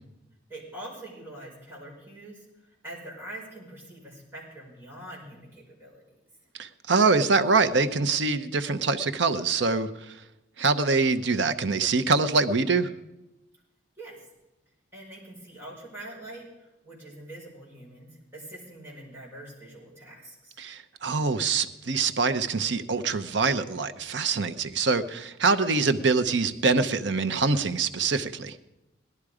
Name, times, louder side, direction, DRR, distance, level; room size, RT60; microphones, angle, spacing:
voice 1, 0.5-6.0 14.0-14.2 14.9-20.6, right 1 dB, 15° right, -5 dB, 5.0 m, -44 dB
voice 2, 6.6-10.1 10.6-12.9 20.6-28.6, right 4 dB, 70° right, 10 dB, 0.8 m, -24 dB
17.5 x 12.0 x 4.9 m, 0.96 s
head